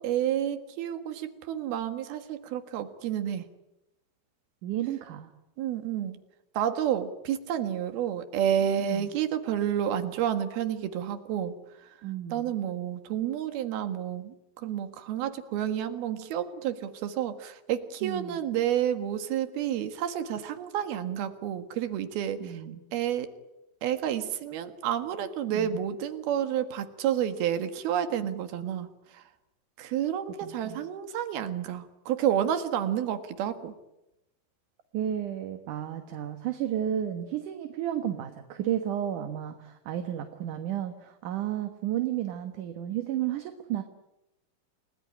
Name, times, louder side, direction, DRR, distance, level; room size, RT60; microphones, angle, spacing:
voice 1, 0.0-3.4 5.6-6.2 6.6-11.6 12.3-22.6 22.9-23.3 23.8-29.2 29.8-33.7, right 10 dB, 85° right, 9 dB, 3.6 m, -30 dB
voice 2, 4.6-5.3 8.8-9.1 12.0-12.5 18.0-18.4 22.4-22.8 25.5-25.7 30.4-30.8 34.9-43.8, right 11 dB, 65° right, 7 dB, 2.7 m, -32 dB
29.5 x 19.5 x 10.0 m, 0.93 s
omnidirectional pair, 4.3 m